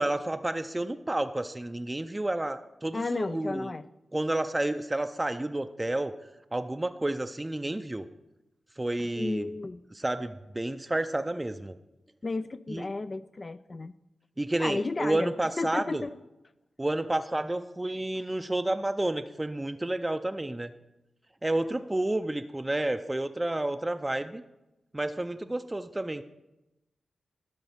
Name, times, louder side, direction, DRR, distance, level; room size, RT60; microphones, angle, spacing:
voice 1, 0.0-3.7 4.1-6.1 6.5-8.1 8.8-9.5 9.9-11.8 12.7-12.9 14.4-16.1 16.8-20.7 21.4-24.4 24.9-26.2, right 1 dB, 20° right, 8 dB, 0.5 m, -30 dB
voice 2, 2.9-3.8 9.2-9.8 12.2-13.9 14.6-16.1, left 3 dB, 45° left, 13 dB, 0.3 m, -33 dB
11.5 x 4.1 x 7.2 m, 0.97 s
cardioid pair, 55°, 0 cm